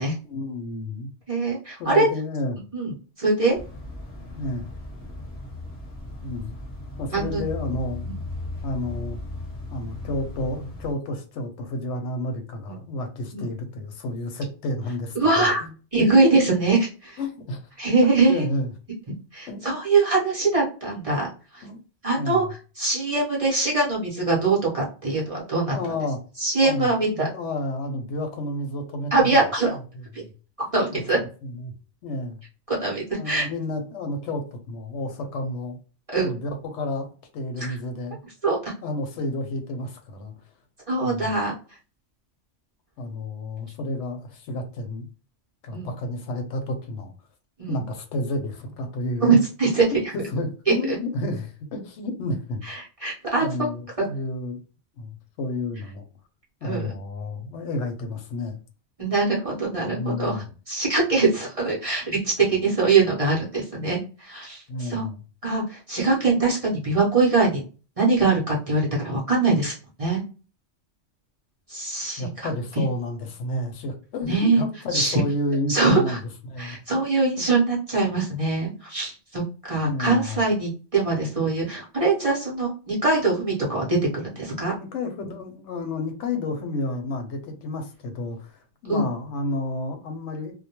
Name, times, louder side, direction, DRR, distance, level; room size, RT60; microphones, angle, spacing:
voice 1, 0.2-1.1 1.8-2.6 4.4-4.7 6.2-6.5 7.0-8.1 8.6-9.2 9.7-15.7 17.2-17.7 18.0-18.7 19.5-19.6 21.6-21.8 22.2-22.5 25.7-26.2 26.6-29.5 29.9-30.3 30.9-31.0 31.4-31.7 32.0-32.4 33.2-35.8 36.2-37.1 37.3-38.2 38.8-40.3 41.0-41.4 43.0-45.0 45.6-47.1 47.7-49.4 50.1-52.6 53.4-54.6 55.0-55.1 55.4-56.1 56.6-58.6 59.9-60.4 64.7-65.2 72.2-76.2 76.5-77.0 77.4-77.5 79.8-80.4 84.7-90.5, left 2 dB, 75° left, 6 dB, 0.9 m, -31 dB
voice 2, 1.3-2.1 2.7-2.9 3.2-3.6 7.1-7.4 13.3-13.5 15.2-15.6 15.9-17.2 17.8-18.4 19.3-21.6 22.0-22.4 22.8-25.8 26.4-27.3 29.1-29.8 30.1-30.2 30.7-31.2 32.7-33.5 36.1-36.3 37.6-37.7 38.4-38.7 40.9-41.5 45.7-45.9 47.6-47.8 49.2-49.9 52.6-53.5 56.6-56.9 59.0-65.1 65.4-67.6 68.0-69.7 70.0-70.2 71.7-72.5 74.3-74.7 74.9-75.2 75.7-76.2 76.6-84.7 88.9-89.0, right 3 dB, 35° right, -4 dB, 0.7 m, -22 dB
sound 1, 3.5-10.9, left 2 dB, 10° left, 0.8 m, -36 dB
2.2 x 2.1 x 2.8 m, 0.36 s
omnidirectional pair, 1.2 m